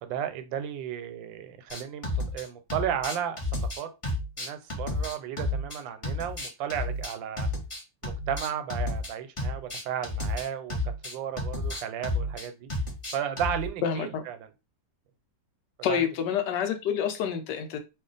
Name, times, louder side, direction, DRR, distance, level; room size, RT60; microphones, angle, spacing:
voice 1, 0.0-3.9 4.4-7.5 8.0-10.8 11.0-12.7 13.1-14.5 15.9-16.0, right 9 dB, 90° right, 1.3 m, -34 dB
sound 1, 1.7-2.4 2.7-5.8 6.0-9.1 9.4-13.7, left 2 dB, 40° left, 0.4 m, -31 dB
voice 2, 13.8-14.2 15.8-17.8, left 8 dB, 75° left, 1.2 m, -28 dB
3.0 x 2.3 x 3.8 m
omnidirectional pair, 2.0 m